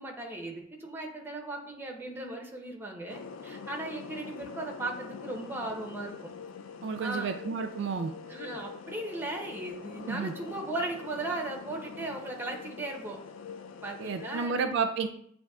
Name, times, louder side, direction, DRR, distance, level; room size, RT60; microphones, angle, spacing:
voice 1, 0.0-6.1 7.0-7.3 8.3-13.2 13.8-14.6, right 2 dB, 10° right, 1 dB, 0.6 m, -37 dB
sound 1, 3.1-14.5, left 6 dB, 75° left, 0.3 m, -44 dB
voice 2, 6.8-8.1 10.1-10.3 14.0-15.1, right 5 dB, 60° right, 7 dB, 0.3 m, -31 dB
7.7 x 2.6 x 2.3 m, 0.68 s
head